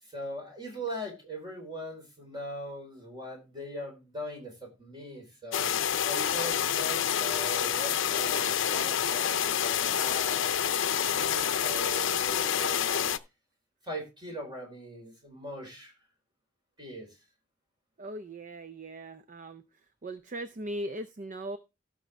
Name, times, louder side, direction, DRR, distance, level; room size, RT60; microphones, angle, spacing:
voice 1, 0.0-10.5 11.1-13.0 13.8-15.9 16.8-17.1, equal, 25° right, 4.4 m, -40 dB
sound 1, 5.5-13.2, left 9 dB, 70° left, 0.6 m, -28 dB
voice 2, 18.0-19.6 20.0-21.6, right 1 dB, 40° right, 0.5 m, -39 dB
17.0 x 6.1 x 3.4 m
head